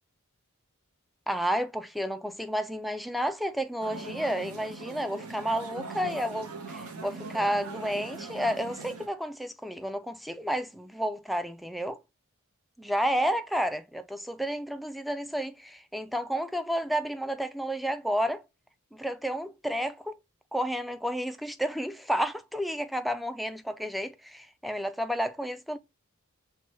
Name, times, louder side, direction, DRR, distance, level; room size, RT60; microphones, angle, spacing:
voice 1, 1.3-12.0 12.8-18.4 18.9-20.2 20.5-25.8, equal, ahead, 0.3 m, -31 dB
sound 1, 3.8-9.1, right 3 dB, 80° right, 0.8 m, -41 dB
5.8 x 2.2 x 3.0 m
head